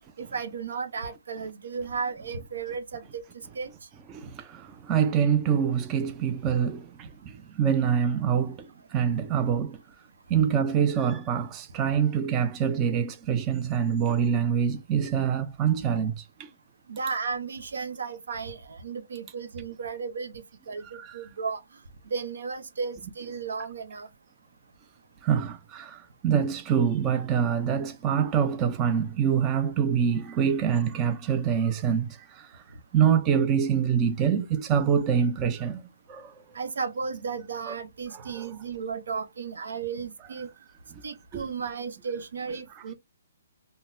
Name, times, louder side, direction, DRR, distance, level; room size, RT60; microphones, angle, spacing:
voice 1, 0.2-3.2 3.5-3.7 10.3-10.4 16.9-21.6 22.1-24.1 36.5-40.5 41.0-42.9, right 5 dB, 75° right, 0.7 m, -34 dB
voice 2, 4.1-9.8 10.3-16.5 20.8-21.2 25.2-32.6 32.9-35.8 36.1-36.3 37.7-37.8 38.1-38.5 41.3-41.4, right 7 dB, 20° right, 0.4 m, -25 dB
3.8 x 2.1 x 2.6 m
hypercardioid pair, 150°, 0 cm